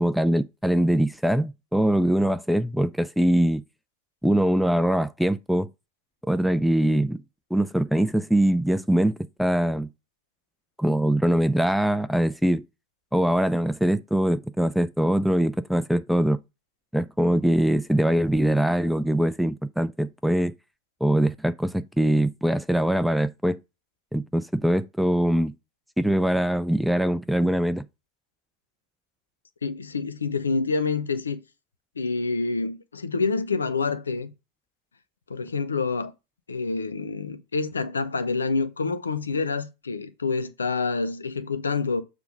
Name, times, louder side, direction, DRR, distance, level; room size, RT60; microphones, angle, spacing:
voice 1, 0.0-3.6 4.2-5.7 6.3-7.2 7.5-9.1 9.4-9.9 10.8-12.6 13.1-16.4 16.9-20.5 21.0-23.6 24.1-25.5 26.0-27.8, right 1 dB, ahead, 0.4 m, -22 dB
voice 2, 29.6-31.4 32.0-34.3 35.3-36.1 36.5-42.0, left 4 dB, 75° left, 0.7 m, -27 dB
6.9 x 3.4 x 5.0 m
figure-of-eight pair, 90°, 0 cm